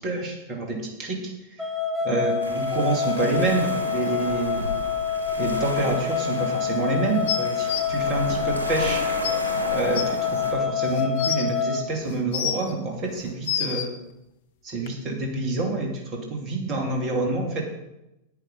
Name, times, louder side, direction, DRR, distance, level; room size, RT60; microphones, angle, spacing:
voice 1, 0.0-1.6 2.0-4.7 5.4-9.0 9.7-13.9 14.6-17.6, right 2 dB, 35° right, 1 dB, 2.5 m, -27 dB
sound 1, 1.6-11.8, left 7 dB, 5° right, 2.0 m, -27 dB
sound 2, 2.4-10.5, equal, 80° right, 1.6 m, -33 dB
sound 3, 7.3-7.8 8.8-8.9 9.2-9.3 9.9-10.0 10.8-11.4 12.1-12.7 13.2-13.9 14.9-15.0, left 9 dB, 55° left, 1.1 m, -28 dB
10.5 x 9.4 x 5.3 m, 0.90 s
figure-of-eight pair, 90°, 0 cm